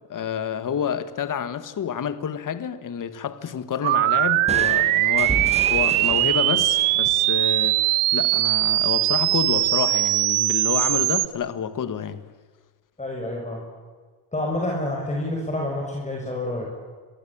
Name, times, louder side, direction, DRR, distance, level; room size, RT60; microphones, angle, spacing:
voice 1, 0.1-12.2, left 8 dB, 40° left, 2.0 m, -29 dB
sound 1, 3.8-11.3, right 17 dB, 85° right, 1.4 m, -21 dB
sound 2, 4.5-8.1, right 2 dB, 15° right, 2.1 m, -33 dB
voice 2, 13.0-13.6 14.3-16.7, left 1 dB, 15° left, 6.8 m, -28 dB
29.0 x 23.0 x 8.9 m
cardioid pair, 120°, 49 cm